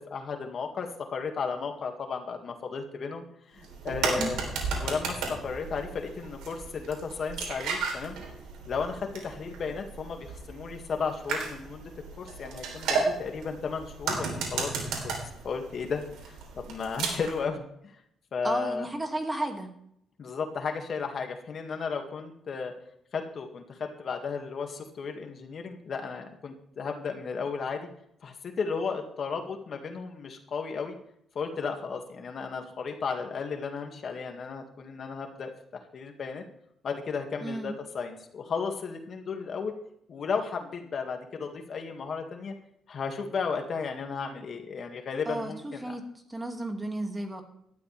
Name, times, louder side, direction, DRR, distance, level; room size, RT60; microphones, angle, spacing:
voice 1, 0.1-3.2 3.5-5.2 5.4-8.2 8.7-11.9 12.2-14.7 15.0-15.1 15.4-18.0 18.3-18.9 20.2-22.7 23.1-27.9 28.2-30.9 31.3-35.5 35.9-36.4 36.8-39.7 40.1-42.5 42.9-45.9, left 5 dB, 55° left, 4 dB, 2.2 m, -34 dB
sound 1, 3.6-17.4, right 4 dB, 90° right, 3.7 m, -34 dB
voice 2, 18.4-19.7 37.4-37.7 45.3-46.0 46.3-47.4, right 1 dB, 15° right, 4 dB, 2.4 m, -33 dB
18.0 x 12.5 x 3.5 m, 0.72 s
cardioid pair, 90°, 0 cm